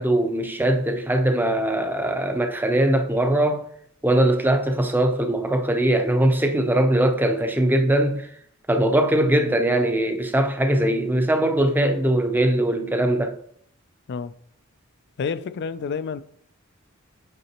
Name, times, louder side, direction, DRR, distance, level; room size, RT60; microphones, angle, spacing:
voice 1, 0.0-3.7 4.0-8.3 8.7-13.3, right 1 dB, 10° right, 0.6 m, -21 dB
voice 2, 15.2-16.2, left 5 dB, 55° left, 0.3 m, -29 dB
8.1 x 5.0 x 2.9 m
head